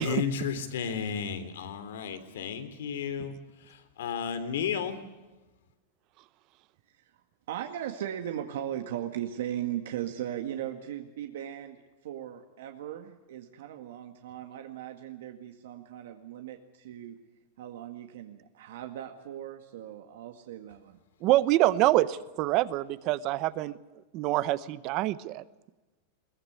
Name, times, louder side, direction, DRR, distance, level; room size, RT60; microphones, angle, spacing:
voice 1, 0.0-3.3 4.0-5.0, left 7 dB, 90° left, 9 dB, 3.4 m, -32 dB
voice 2, 7.5-17.2 17.6-21.0, right 11 dB, 70° right, 5 dB, 2.0 m, -38 dB
voice 3, 21.2-23.8 24.1-25.4, right 16 dB, 35° right, 17 dB, 0.8 m, -26 dB
22.0 x 19.5 x 8.1 m, 1.1 s
supercardioid pair, 175°, 0 cm